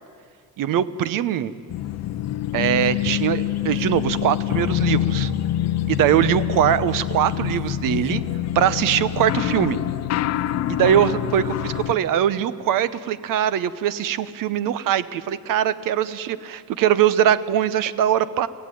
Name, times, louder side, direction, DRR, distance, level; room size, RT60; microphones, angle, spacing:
voice 1, 0.6-1.5 2.5-5.3 5.9-8.2 8.5-9.8 10.7-18.5, right 10 dB, 65° right, 16 dB, 0.9 m, -21 dB
sound 1, 1.7-11.9, left 12 dB, 50° left, 0.6 m, -25 dB
24.5 x 16.0 x 9.3 m, 2.3 s
cardioid pair, 180°, 35 cm